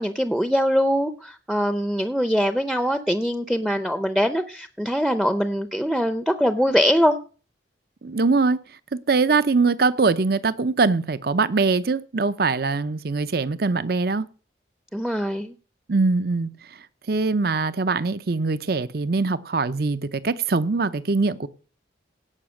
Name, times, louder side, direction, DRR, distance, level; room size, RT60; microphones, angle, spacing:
voice 1, 0.0-7.2 14.9-15.5, equal, ahead, 0.6 m, -22 dB
voice 2, 8.0-8.6 8.9-14.3 15.9-16.5 17.1-21.5, right 4 dB, 55° right, 0.7 m, -22 dB
17.5 x 5.8 x 6.4 m
head